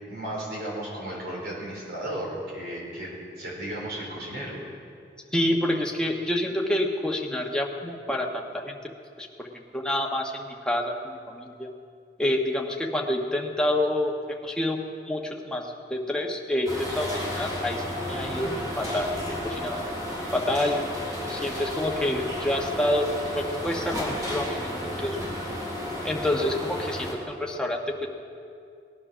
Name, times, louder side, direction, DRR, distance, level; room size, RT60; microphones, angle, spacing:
voice 1, 0.1-4.6, right 1 dB, 65° right, -3 dB, 4.6 m, -34 dB
voice 2, 5.3-8.8 9.2-9.5 9.7-11.7 12.2-19.1 19.4-19.9 20.3-20.9 21.3-23.1 23.3-25.2 26.0-28.1, left 1 dB, 5° left, 0 dB, 1.2 m, -28 dB
sound 1, 16.6-27.1, left 1 dB, 20° right, 2.8 m, -32 dB
19.0 x 11.0 x 6.2 m, 2.4 s
head